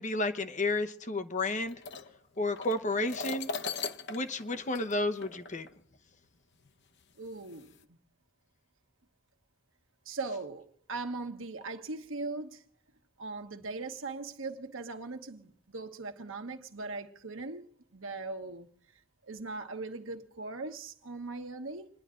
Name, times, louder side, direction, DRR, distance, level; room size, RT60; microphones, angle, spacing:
voice 1, 0.0-1.7 2.4-3.5 4.1-5.7, left 2 dB, 40° left, 1.0 m, -31 dB
sound 1, 1.6-5.8 6.7-6.8 7.4-7.8, left 4 dB, 60° left, 0.8 m, -40 dB
voice 2, 7.2-7.7 10.0-12.6 13.2-18.7 19.2-21.9, right 3 dB, 80° right, 1.3 m, -40 dB
28.0 x 10.5 x 3.8 m
head